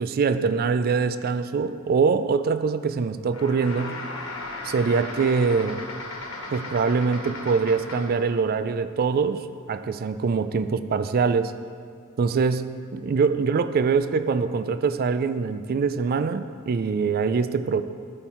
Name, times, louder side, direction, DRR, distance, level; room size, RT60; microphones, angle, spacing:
voice 1, 0.0-4.0 4.6-5.8 6.5-11.5 12.2-17.8, right 5 dB, 45° right, 12 dB, 0.3 m, -24 dB
sound 1, 3.3-8.3, left 2 dB, 75° left, 1.3 m, -36 dB
12.5 x 4.5 x 4.3 m, 2.2 s
head